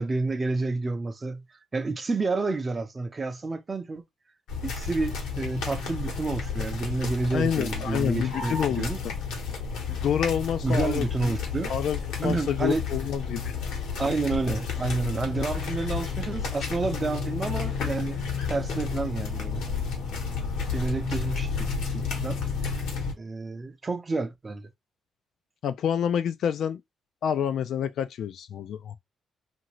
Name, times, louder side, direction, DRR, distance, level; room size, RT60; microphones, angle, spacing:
voice 1, 0.0-1.4 1.7-4.0 4.6-9.0 10.6-11.7 12.2-12.8 14.0-18.2 18.5-19.6 20.7-21.5 21.9-22.4 23.2-24.7, right 3 dB, 30° right, 0.6 m, -29 dB
sound 1, 4.5-23.1, left 5 dB, 85° left, 1.1 m, -31 dB
voice 2, 7.3-8.9 9.9-11.3 11.7-13.5 25.6-26.8 27.2-29.0, left 8 dB, 70° left, 0.3 m, -28 dB
2.7 x 2.6 x 3.0 m
cardioid pair, 90°, 0 cm